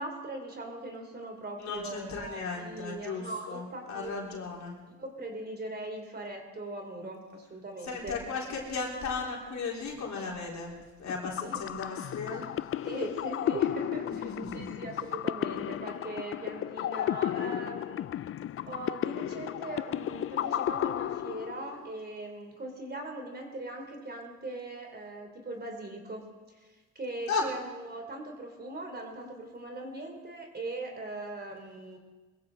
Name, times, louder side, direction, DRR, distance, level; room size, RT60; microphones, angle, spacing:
voice 1, 0.0-4.5 5.0-8.2 11.4-11.6 12.8-18.1 18.7-26.3 26.9-32.0, right 2 dB, 35° right, 3 dB, 3.1 m, -40 dB
voice 2, 1.6-4.8 7.8-10.7 11.0-12.9 14.0-14.8 27.3-27.5, left 4 dB, 65° left, -2 dB, 3.9 m, -36 dB
sound 1, 11.1-21.9, left 11 dB, 45° left, 0.4 m, -33 dB
21.5 x 15.0 x 3.9 m, 1.3 s
cardioid pair, 90°, 30 cm